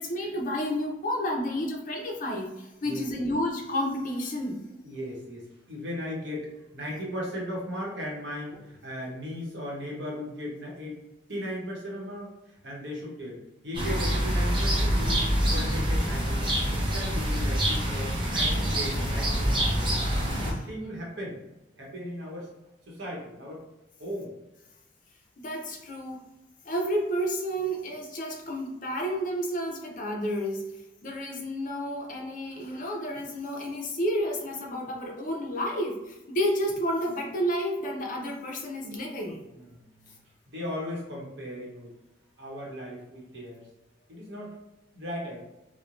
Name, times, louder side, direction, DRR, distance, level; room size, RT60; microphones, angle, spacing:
voice 1, 0.0-4.6 20.6-20.9 25.4-26.3 26.6-39.4, equal, 45° left, 0 dB, 0.6 m, -31 dB
voice 2, 2.8-3.3 4.8-11.0 11.3-13.4 13.6-19.8 20.4-21.4 21.8-22.5 22.9-23.6 24.0-24.3 39.5-40.1 40.5-41.9 42.4-43.7 44.1-44.6 44.9-45.5, left 1 dB, 75° right, -4 dB, 1.0 m, -37 dB
sound 1, 13.7-20.5, equal, 25° right, 0.7 m, -26 dB
3.1 x 2.1 x 2.5 m, 0.97 s
head